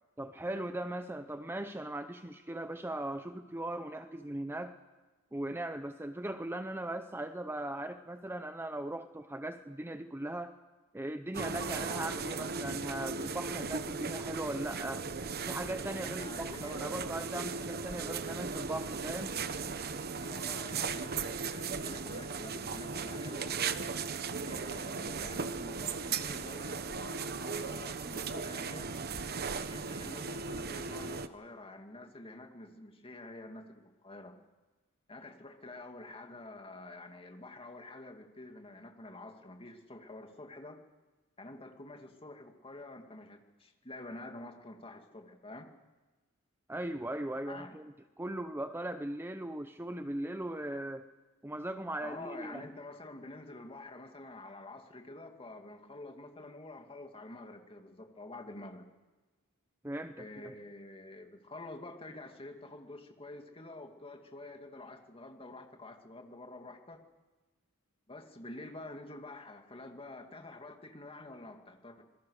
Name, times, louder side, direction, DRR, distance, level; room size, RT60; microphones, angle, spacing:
voice 1, 0.2-4.7 5.3-10.5 10.9-15.1 15.5-19.4 46.7-51.0 51.4-52.6 59.8-60.5, right 1 dB, 10° right, 9 dB, 0.7 m, -39 dB
sound 1, 11.3-31.3, right 5 dB, 45° right, 1.0 m, -37 dB
voice 2, 16.0-16.9 20.3-23.6 24.4-29.2 29.6-34.4 35.1-40.8 41.4-45.7 47.5-47.7 52.0-58.9 60.2-67.0 68.1-72.0, left 2 dB, 25° left, 4 dB, 2.4 m, -48 dB
26.5 x 21.5 x 6.6 m, 1.3 s
head